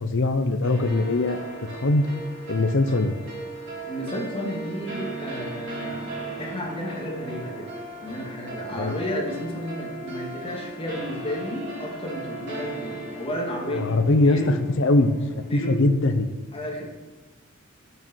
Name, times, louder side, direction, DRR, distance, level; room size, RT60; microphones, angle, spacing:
voice 1, 0.0-1.4 1.8-2.1 2.5-3.1 8.7-8.9 13.7-14.4 14.8-15.1 15.5-16.3, left 2 dB, 65° left, 8 dB, 0.7 m, -21 dB
sound 1, 0.6-16.0, right 2 dB, 55° right, 3.7 m, -37 dB
voice 2, 3.9-7.7 8.0-14.6 15.5-15.8 16.5-16.9, equal, 30° left, -1 dB, 2.0 m, -32 dB
8.5 x 6.8 x 6.2 m, 1.2 s
head